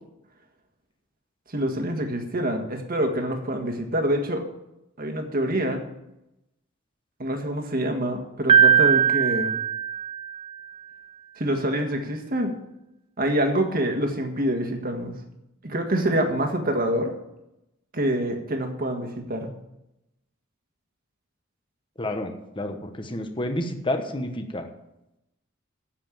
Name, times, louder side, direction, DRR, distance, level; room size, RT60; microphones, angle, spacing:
voice 1, 1.5-4.4 5.0-5.8 7.2-9.5 11.4-12.5 13.2-15.2 15.6-17.1 17.9-19.5, right 1 dB, 45° right, 4 dB, 1.7 m, -26 dB
Piano, 8.5-10.6, right 9 dB, 30° right, 0.7 m, -20 dB
voice 2, 22.0-24.7, left 1 dB, 25° left, 6 dB, 1.1 m, -30 dB
8.7 x 7.7 x 8.9 m, 0.89 s
head